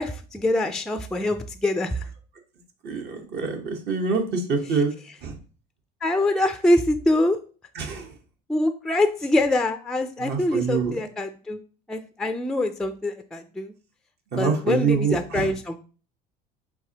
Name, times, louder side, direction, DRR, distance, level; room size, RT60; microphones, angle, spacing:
voice 1, 0.0-2.1 6.0-7.4 8.5-11.6 11.9-13.7 14.4-15.8, left 1 dB, 5° left, 8 dB, 0.4 m, -24 dB
voice 2, 2.8-4.9 5.2-5.4 7.7-8.2 10.2-11.0 14.3-15.5, right 5 dB, 55° right, 3 dB, 1.1 m, -25 dB
4.6 x 3.4 x 2.9 m, 0.37 s
supercardioid pair, 90°, 20 cm